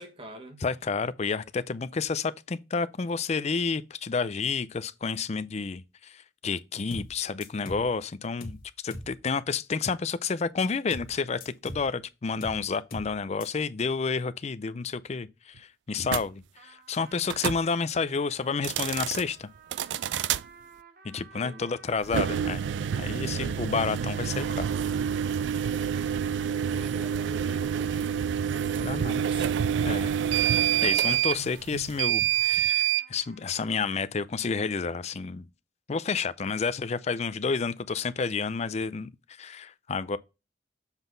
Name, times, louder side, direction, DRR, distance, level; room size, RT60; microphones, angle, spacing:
voice 1, 0.0-0.6 21.3-21.7 26.5-29.5, right 1 dB, 30° right, 1.5 m, -44 dB
voice 2, 0.6-8.6 8.8-19.5 21.0-22.6 23.0-24.7 28.8-29.2 29.8-30.1 30.8-35.5 35.9-40.2, left 5 dB, 35° left, 0.4 m, -30 dB
sound 1, 6.9-7.1 7.4-7.9 8.4-8.6 8.9-9.1 10.9-11.1 11.4-11.9 12.4-12.6 12.9-13.1 13.4-13.5, left 1 dB, 55° left, 1.4 m, -40 dB
sound 2, 16.1-16.2 17.2-17.6 18.5-19.2 19.7-20.4 22.0-33.1, right 9 dB, 80° right, 0.3 m, -27 dB
sound 3, 16.5-33.7, right 5 dB, 55° right, 0.9 m, -54 dB
7.2 x 3.9 x 3.9 m
head